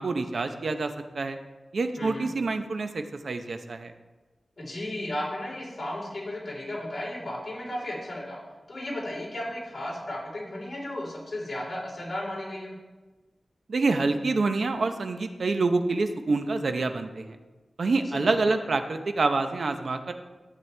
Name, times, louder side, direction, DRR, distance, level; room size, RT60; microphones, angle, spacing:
voice 1, 0.0-1.4 1.7-3.9 13.7-17.4 17.8-20.1, right 3 dB, 65° right, 7 dB, 0.8 m, -27 dB
voice 2, 2.0-2.3 4.6-8.4 8.7-12.7 18.1-18.4, left 1 dB, 50° left, -4 dB, 3.9 m, -34 dB
12.5 x 8.8 x 3.3 m, 1.2 s
wide cardioid pair, 115°, 0 cm